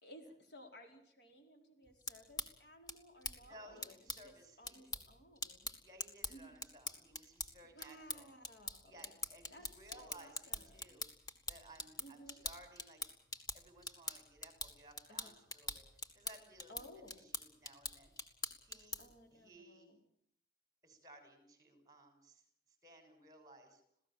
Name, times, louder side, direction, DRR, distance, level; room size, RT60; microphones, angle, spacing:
voice 1, 0.0-5.6 6.3-6.7 7.7-9.1 9.5-11.0 12.0-12.4 15.1-15.3 16.7-17.2 19.0-20.0, equal, 70° left, 4 dB, 4.6 m, -58 dB
sound 1, 1.8-19.2, left 2 dB, 20° left, 2.0 m, -46 dB
voice 2, 3.4-4.9 5.8-8.3 8.8-11.0 11.5-13.0 13.5-15.8 16.1-18.1 18.6-19.0 19.3-20.0 20.8-22.4 22.8-23.8, right 1 dB, 20° right, 7 dB, 5.9 m, -59 dB
27.5 x 17.0 x 7.6 m, 0.69 s
head